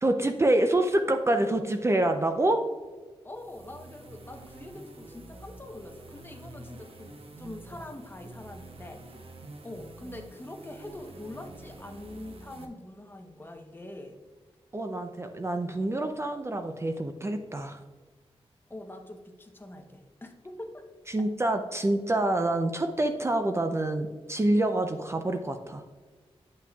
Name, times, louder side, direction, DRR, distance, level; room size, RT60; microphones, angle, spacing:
voice 1, 0.0-2.6 14.7-17.8 21.1-25.8, right 1 dB, 25° right, 6 dB, 0.4 m, -26 dB
voice 2, 3.2-9.0 9.6-14.2 18.7-20.8, left 1 dB, 20° left, 4 dB, 0.8 m, -44 dB
sound 1, 3.3-12.7, right 2 dB, 65° right, 0.9 m, -47 dB
9.6 x 5.9 x 2.3 m, 1.4 s
wide cardioid pair, 110°, 11 cm